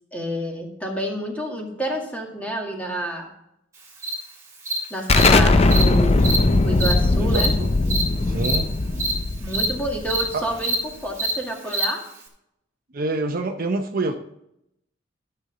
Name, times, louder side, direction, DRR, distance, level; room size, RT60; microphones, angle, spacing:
voice 1, 0.1-3.3 4.9-6.2 6.6-7.5 9.4-12.0, right 1 dB, 5° left, -1 dB, 2.0 m, -29 dB
Cricket, 4.0-4.1 4.7-4.8 5.2-5.3 5.7-5.8 6.2-6.4 6.8-6.9 7.3-7.5 7.9-8.0 8.4-8.6 9.0-9.1 9.5-9.7 10.1-10.2 10.6-10.8 11.2-11.3 11.7-11.8, right 3 dB, 15° right, 2.5 m, -24 dB
Explosion, 5.1-10.5, left 3 dB, 30° left, 0.5 m, -19 dB
voice 2, 7.2-7.7 8.2-8.7 10.3-10.4 12.9-14.2, right 2 dB, 50° right, 5 dB, 0.7 m, -26 dB
12.5 x 7.0 x 3.8 m, 0.80 s
head